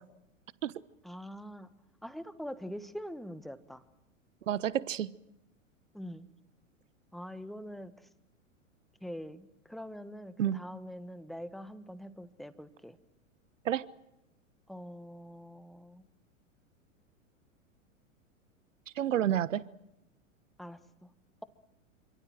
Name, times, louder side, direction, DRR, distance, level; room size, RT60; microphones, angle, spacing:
voice 1, 1.0-1.7 2.0-3.8 5.9-6.3 7.1-7.9 9.0-13.0 14.7-16.0 20.6-21.1, equal, ahead, 13 dB, 1.4 m, -44 dB
voice 2, 4.5-5.1 10.4-10.6 13.6-13.9 19.0-19.6, right 11 dB, 65° right, 19 dB, 1.1 m, -29 dB
27.5 x 26.0 x 7.7 m, 0.87 s
figure-of-eight pair, 100°, 41 cm